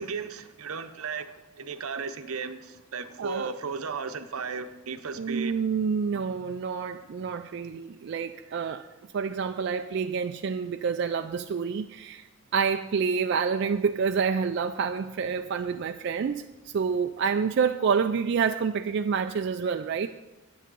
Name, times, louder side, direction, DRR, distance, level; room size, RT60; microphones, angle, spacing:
voice 1, 0.0-5.5 6.1-6.2, right 5 dB, 80° right, 0.7 m, -35 dB
voice 2, 3.2-3.5 5.2-8.9 9.1-12.3 12.5-20.1, right 6 dB, 50° right, 0.3 m, -28 dB
10.0 x 8.4 x 5.4 m
head